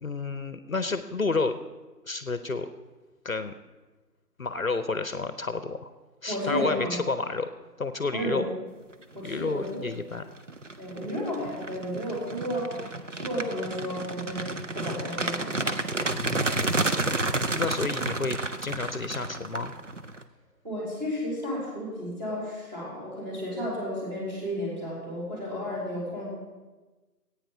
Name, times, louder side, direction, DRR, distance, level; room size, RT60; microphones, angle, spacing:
voice 1, 0.0-1.6 2.1-2.7 3.2-3.5 4.4-5.9 6.2-7.5 7.8-8.4 9.2-10.2 16.1-17.1 17.6-19.7, left 3 dB, 55° left, 11 dB, 0.8 m, -30 dB
voice 2, 6.3-7.0 8.1-8.4 9.1-9.8 10.8-14.5 14.7-15.8 20.6-26.3, equal, 25° right, -5 dB, 3.9 m, -33 dB
sound 1, 9.4-9.7 10.1-20.2, right 2 dB, 50° right, 0.6 m, -31 dB
15.0 x 8.9 x 4.9 m, 1.2 s
figure-of-eight pair, 175°, 49 cm